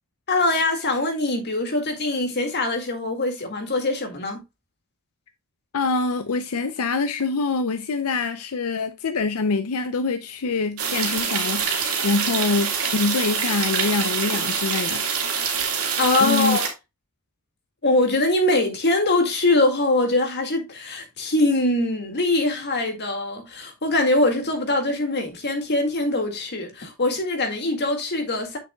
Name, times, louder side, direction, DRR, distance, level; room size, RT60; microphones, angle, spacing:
voice 1, 0.3-4.4 16.0-16.7 17.8-28.6, left 2 dB, 50° left, 1.9 m, -23 dB
voice 2, 5.7-15.0 16.2-16.6, left 4 dB, 85° left, 0.6 m, -25 dB
sound 1, 10.8-16.7, right 6 dB, 70° right, 2.3 m, -25 dB
7.5 x 6.7 x 2.2 m
head